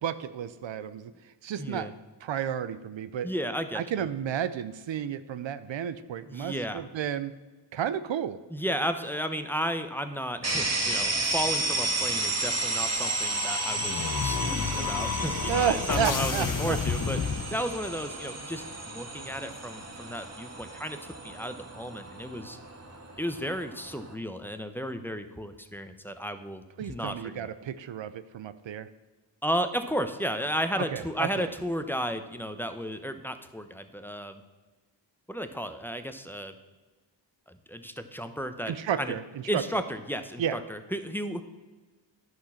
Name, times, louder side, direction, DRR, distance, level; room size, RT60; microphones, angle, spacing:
voice 1, 0.0-1.9 2.2-3.3 3.7-7.3 7.7-8.4 15.5-16.8 26.8-28.9 30.9-31.5 38.7-39.6 40.4-40.6, right 9 dB, 80° right, 13 dB, 0.6 m, -32 dB
voice 2, 1.6-1.9 3.2-3.8 6.3-6.8 8.5-17.2 17.5-22.6 23.2-27.5 29.4-34.4 35.3-36.5 37.5-39.1 39.5-41.4, equal, 5° left, 8 dB, 0.9 m, -33 dB
sound 1, 10.4-24.1, right 2 dB, 35° right, 1.7 m, -32 dB
sound 2, 13.0-18.0, left 6 dB, 45° left, 0.9 m, -31 dB
10.5 x 6.3 x 5.7 m, 1.3 s
cardioid pair, 55°, 45 cm